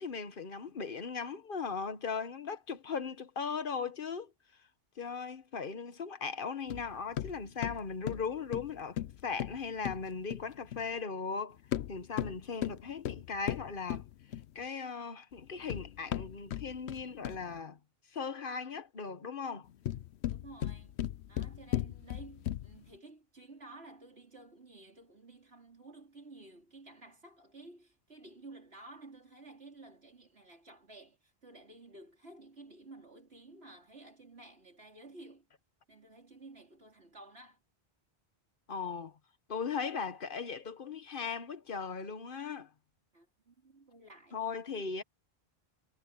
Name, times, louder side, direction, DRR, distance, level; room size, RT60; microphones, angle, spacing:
voice 1, 0.0-4.3 5.0-11.6 11.9-14.0 14.5-17.8 18.1-19.7 38.7-39.2 39.5-42.7 44.3-45.0, left 5 dB, 55° left, 1.2 m, -38 dB
sound 1, 6.7-10.9 11.6-14.6 15.4-17.6 19.6-22.9, left 12 dB, 85° left, 0.9 m, -38 dB
voice 2, 19.9-20.9 21.3-35.5 35.9-37.6 43.1-44.4, right 2 dB, 80° right, 4.8 m, -53 dB
omnidirectional pair, 1.1 m